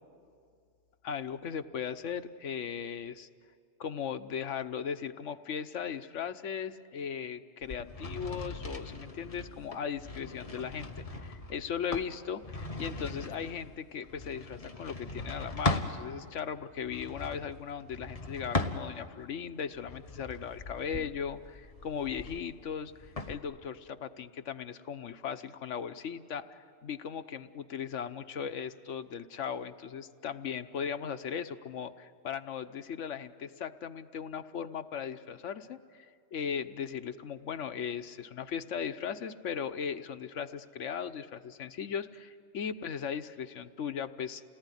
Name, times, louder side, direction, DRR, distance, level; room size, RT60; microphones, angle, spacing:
voice 1, 1.0-3.3 3.8-44.4, left 7 dB, 85° left, 10 dB, 1.2 m, -38 dB
sound 1, 7.6-16.0 16.8-19.2 19.7-23.4, left 2 dB, 30° left, 1.3 m, -38 dB
29.0 x 18.5 x 9.9 m, 2.2 s
omnidirectional pair, 1.2 m